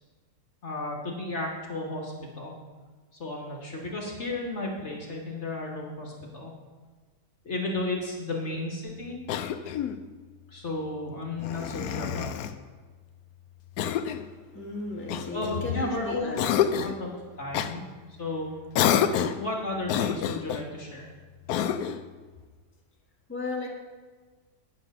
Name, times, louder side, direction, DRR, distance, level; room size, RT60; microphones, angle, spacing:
voice 1, 0.6-2.5 3.2-6.5 7.4-9.2 10.5-12.4 15.3-16.5 16.8-17.1 17.4-17.8 18.1-18.5 19.3-21.1, left 2 dB, 45° left, -1 dB, 1.5 m, -33 dB
Cough, 9.3-10.0 11.4-12.6 13.8-14.3 15.1-15.9 16.4-17.0 17.5-17.7 18.7-19.5 19.9-20.7 21.5-22.1, left 9 dB, 75° left, 1.0 m, -28 dB
voice 2, 14.5-16.4 23.3-23.7, left 2 dB, 10° left, -2 dB, 1.3 m, -34 dB
9.7 x 5.9 x 6.4 m, 1.4 s
omnidirectional pair, 1.8 m